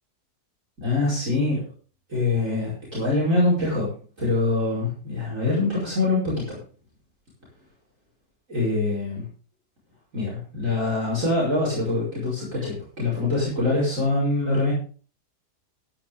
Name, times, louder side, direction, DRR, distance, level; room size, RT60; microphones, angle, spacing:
voice 1, 0.8-1.6 2.1-3.9 4.2-6.6 8.5-9.3 10.1-14.7, left 2 dB, 50° right, -6 dB, 5.5 m, -24 dB
13.5 x 11.0 x 3.6 m, 0.40 s
omnidirectional pair, 1.7 m